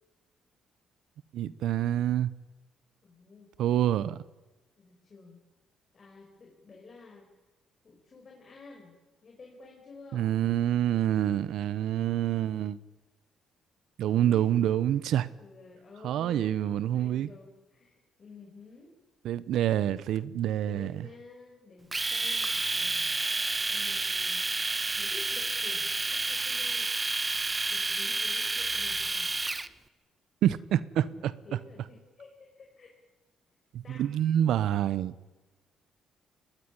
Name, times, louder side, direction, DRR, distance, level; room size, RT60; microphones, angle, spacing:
voice 1, 1.3-2.3 3.6-4.2 10.1-12.8 14.0-15.3 16.0-17.3 19.2-21.1 30.4-31.3 33.7-35.1, right 11 dB, 80° right, 0.8 m, -27 dB
voice 2, 3.0-3.5 4.8-5.4 5.9-7.3 7.8-8.9 9.2-10.3 14.1-14.6 15.4-18.9 20.7-24.5 24.9-26.9 27.7-29.3 30.4-32.9 33.8-34.1, left 4 dB, 40° left, 5.7 m, -51 dB
Domestic sounds home sounds, 21.9-29.7, right 3 dB, 20° right, 1.0 m, -30 dB
23.0 x 19.0 x 9.7 m
cardioid pair, 90°, 0 cm